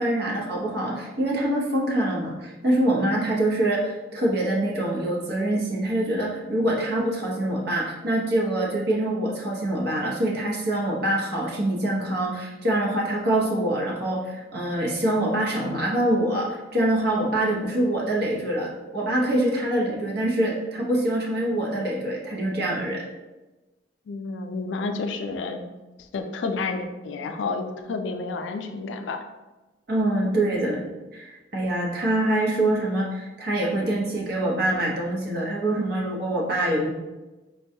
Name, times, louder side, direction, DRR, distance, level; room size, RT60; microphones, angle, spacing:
voice 1, 0.0-23.0 29.9-30.8 31.1-36.9, right 1 dB, 60° right, -3 dB, 0.8 m, -25 dB
voice 2, 24.1-25.7 26.1-29.2, left 3 dB, 85° left, 6 dB, 0.4 m, -30 dB
4.6 x 2.2 x 2.7 m, 1.1 s
head